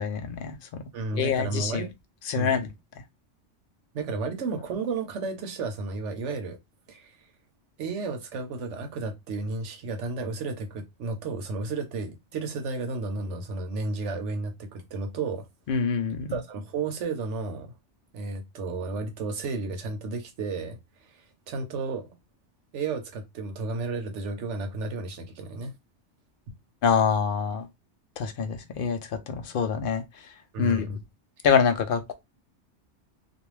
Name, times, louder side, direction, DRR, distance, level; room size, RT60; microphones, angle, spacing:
voice 1, 0.0-1.8 2.3-2.7 15.7-16.4 26.8-27.7 28.2-30.3 30.6-30.9 31.4-32.1, left 6 dB, 60° left, 0.6 m, -26 dB
voice 2, 0.9-1.9 2.3-2.5 3.9-6.6 6.9-7.2 7.8-15.5 16.3-17.7 18.1-20.8 21.1-22.1 22.7-25.7 30.5-31.0, right 3 dB, 80° right, 1.0 m, -32 dB
2.5 x 2.3 x 3.1 m
omnidirectional pair, 1.2 m